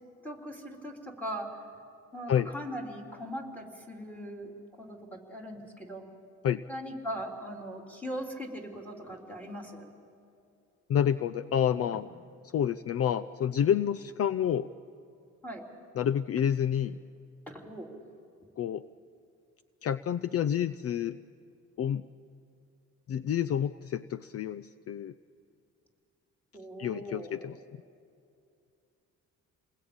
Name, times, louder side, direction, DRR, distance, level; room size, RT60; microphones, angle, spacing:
voice 1, 0.2-1.5 2.1-4.5 4.8-6.0 6.7-9.9 15.4-15.6 17.5-17.9 26.5-27.6, equal, 5° left, 0 dB, 3.5 m, -40 dB
voice 2, 10.9-12.1 12.5-14.7 16.0-17.0 18.6-18.8 19.8-21.2 21.8-22.0 23.1-25.1 26.8-27.6, left 9 dB, 50° left, 14 dB, 0.5 m, -28 dB
28.5 x 20.5 x 8.8 m, 2.5 s
cardioid pair, 130°, 31 cm